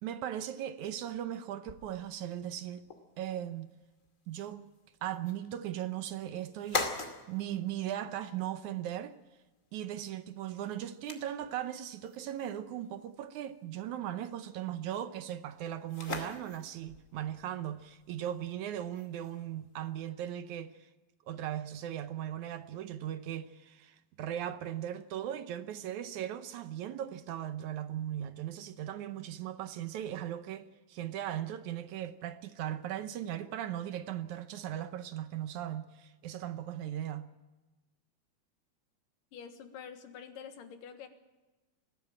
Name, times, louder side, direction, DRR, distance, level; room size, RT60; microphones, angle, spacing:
voice 1, 0.0-2.9 3.2-3.7 4.3-4.7 5.0-6.9 7.3-9.2 9.7-20.9 21.3-37.3, right 11 dB, 70° right, 2.1 m, -38 dB
Fall on the floor, 1.7-20.1, left 3 dB, 25° left, 2.3 m, -45 dB
voice 2, 39.3-41.1, left 7 dB, 80° left, 3.1 m, -47 dB
21.0 x 15.5 x 8.8 m
omnidirectional pair, 3.8 m